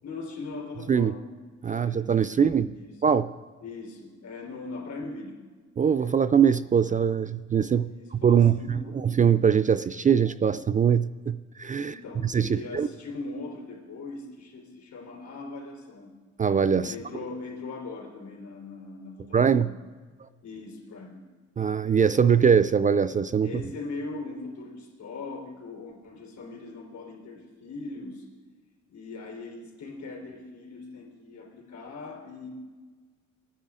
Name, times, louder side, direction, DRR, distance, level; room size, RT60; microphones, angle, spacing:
voice 1, 0.0-1.3 1.7-3.0 3.6-5.4 7.8-9.0 11.8-16.1 16.8-19.7 20.4-21.2 23.4-28.2 28.9-32.5, left 3 dB, 65° left, 1 dB, 3.8 m, -40 dB
voice 2, 1.6-2.7 3.0-3.3 5.8-8.6 9.2-11.9 12.2-12.9 16.4-16.9 19.3-19.7 21.6-23.5, right 7 dB, 25° right, 14 dB, 0.3 m, -22 dB
19.5 x 10.0 x 3.7 m, 1.4 s
cardioid pair, 90°, 30 cm